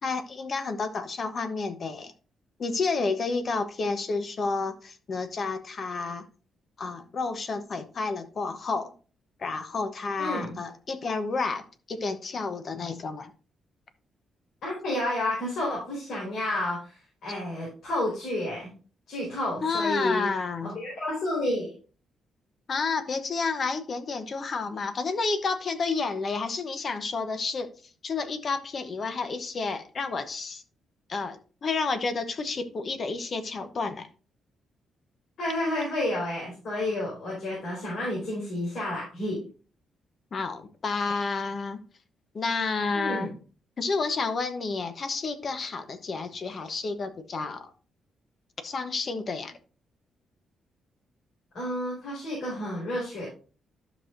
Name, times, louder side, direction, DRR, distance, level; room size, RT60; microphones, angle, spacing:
voice 1, 0.0-2.1 2.6-6.3 6.8-8.9 9.4-13.3 19.6-20.7 22.7-27.7 28.0-30.6 31.1-34.1 40.3-41.8 42.3-43.3 43.8-47.7 48.6-49.5, left 4 dB, 40° left, 10 dB, 0.9 m, -30 dB
voice 2, 10.2-10.5 14.6-18.7 19.1-20.3 20.6-21.7 35.4-39.4 42.9-43.3 51.5-53.3, left 1 dB, 60° left, -5 dB, 4.5 m, -30 dB
12.0 x 6.1 x 2.6 m, 0.38 s
cardioid pair, 150°, 0 cm